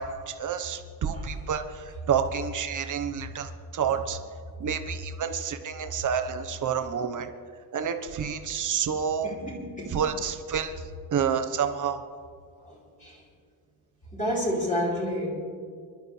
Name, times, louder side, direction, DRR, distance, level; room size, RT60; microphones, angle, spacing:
voice 1, 0.0-4.2 4.6-7.3 7.7-9.3 9.9-10.7 11.1-12.0, right 7 dB, 45° right, 7 dB, 1.2 m, -29 dB
voice 2, 9.2-10.0 12.6-13.2 14.1-15.3, equal, 20° left, -5 dB, 4.7 m, -31 dB
28.0 x 12.0 x 3.4 m, 2.1 s
cardioid pair, 135°, 42 cm